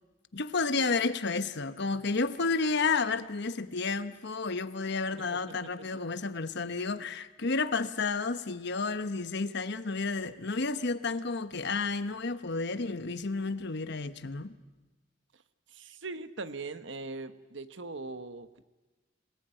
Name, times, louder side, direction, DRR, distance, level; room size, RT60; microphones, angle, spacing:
voice 1, 0.3-14.6, left 4 dB, 65° left, 1.1 m, -31 dB
voice 2, 15.7-18.6, right 3 dB, 70° right, 1.2 m, -40 dB
27.0 x 19.0 x 9.0 m
head